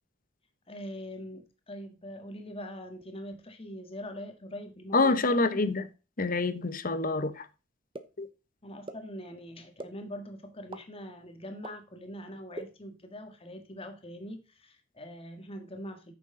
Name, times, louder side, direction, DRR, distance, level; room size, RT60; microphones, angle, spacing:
voice 1, 0.7-5.9 8.6-16.1, equal, 30° left, 1.8 m, -43 dB
voice 2, 4.9-5.8 6.2-7.5 8.2-8.3, left 3 dB, 45° left, 1.0 m, -26 dB
sound 1, 7.9-8.0 8.9-9.0 9.8-9.9 10.7-10.8 11.6-11.7 12.5-12.6, right 2 dB, 25° right, 1.0 m, -38 dB
9.1 x 6.9 x 3.8 m
head